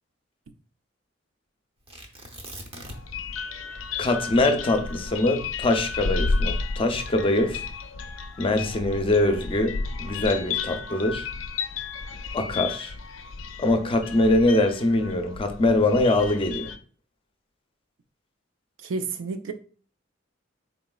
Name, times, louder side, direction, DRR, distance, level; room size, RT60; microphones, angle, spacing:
Tearing, 1.9-3.3 3.6-3.7 4.2-6.6 7.3-7.7, right 1 dB, 30° right, 0.7 m, -43 dB
sound 1, 2.8-16.8, left 4 dB, 80° left, 0.4 m, -32 dB
voice 1, 4.0-7.6 8.4-11.3 12.3-12.9 13.6-16.7, left 2 dB, 30° left, 6 dB, 0.5 m, -23 dB
voice 2, 18.8-19.5, right 4 dB, 75° right, 8 dB, 0.5 m, -30 dB
4.0 x 3.9 x 2.2 m, 0.43 s
head